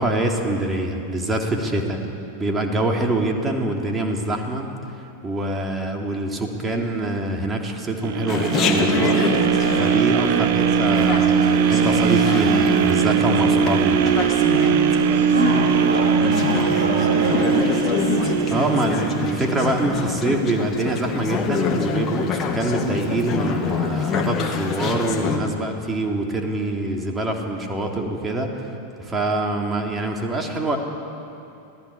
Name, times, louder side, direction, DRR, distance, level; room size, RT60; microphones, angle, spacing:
voice 1, 0.0-2.0 2.4-4.7 5.2-9.3 9.7-14.2 18.5-28.7 29.0-30.8, right 2 dB, 15° right, 2 dB, 3.3 m, -25 dB
sound 1, 8.0-20.1 20.6-20.7, right 7 dB, 50° right, 1.4 m, -20 dB
Chatter, 8.3-25.4, left 5 dB, 25° left, 2.4 m, -26 dB
voice 2, 15.0-17.6, right 1 dB, 70° right, -6 dB, 5.2 m, -25 dB
27.0 x 17.5 x 8.6 m, 2.7 s
figure-of-eight pair, 90°, 0 cm